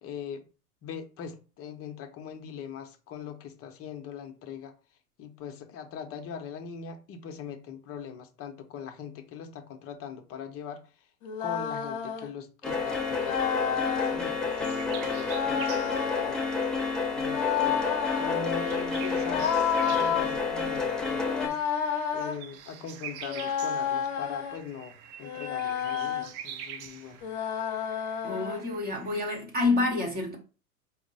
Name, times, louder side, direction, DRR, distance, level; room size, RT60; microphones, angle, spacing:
voice 1, 0.0-0.4 0.8-4.7 5.2-11.1 11.4-16.4 17.1-21.6 22.1-27.2, left 7 dB, 30° left, 0.8 m, -41 dB
sound 1, 11.2-12.3 13.2-14.2 15.2-16.4 17.2-18.5 19.2-20.3 21.2-22.4 23.2-24.6 25.2-26.3 27.2-28.6, left 7 dB, 55° left, 1.1 m, -30 dB
sound 2, 12.6-21.5, left 4 dB, ahead, 0.5 m, -30 dB
sound 3, 14.5-29.4, right 8 dB, 40° right, 0.6 m, -46 dB
voice 2, 28.2-30.4, left 3 dB, 20° right, 1.0 m, -28 dB
4.4 x 2.1 x 3.9 m
hypercardioid pair, 95°, 44 cm